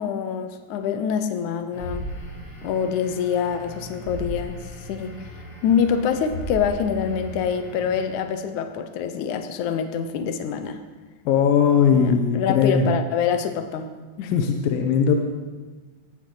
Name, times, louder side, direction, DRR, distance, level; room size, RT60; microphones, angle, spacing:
voice 1, 0.0-2.1 2.6-5.2 5.6-10.8 11.9-13.9 14.2-14.4, left 7 dB, 90° left, 8 dB, 1.7 m, -25 dB
sound 1, 1.7-8.4, equal, 25° left, 3.4 m, -37 dB
voice 2, 11.3-12.9 14.2-15.2, left 7 dB, 70° left, 4 dB, 2.6 m, -19 dB
18.0 x 15.0 x 3.9 m, 1.3 s
omnidirectional pair, 4.6 m